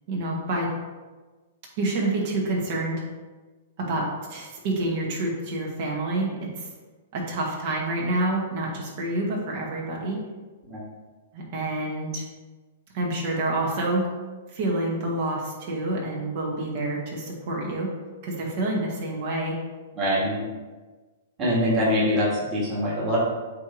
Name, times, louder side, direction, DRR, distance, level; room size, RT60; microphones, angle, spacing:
voice 1, 0.1-0.7 1.8-3.0 3.8-6.7 7.1-10.2 11.3-12.2 12.9-14.1 14.5-17.9 18.2-19.6, right 2 dB, 50° right, -2 dB, 2.0 m, -28 dB
voice 2, 20.0-20.4 21.4-23.2, equal, 20° right, -8 dB, 2.1 m, -24 dB
8.3 x 3.4 x 4.7 m, 1.3 s
hypercardioid pair, 150°, 0 cm